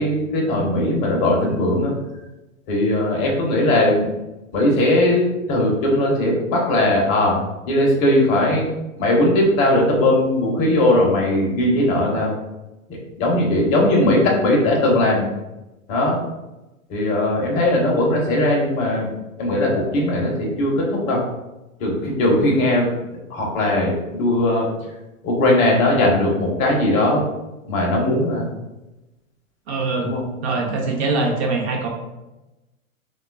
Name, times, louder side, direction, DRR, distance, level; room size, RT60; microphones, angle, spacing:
voice 1, 0.0-1.9 2.7-4.1 4.5-7.4 7.7-8.7 9.0-12.3 12.9-15.3 15.9-16.2 16.9-19.1 19.4-21.2 21.8-22.9 23.3-24.7 25.2-27.2 27.7-28.5 30.0-30.2, left 1 dB, 20° left, -2 dB, 0.4 m, -19 dB
voice 2, 29.7-30.1 30.4-31.9, right 3 dB, 50° right, 1 dB, 0.7 m, -22 dB
2.9 x 2.2 x 2.3 m, 1.0 s
hypercardioid pair, 125°, 41 cm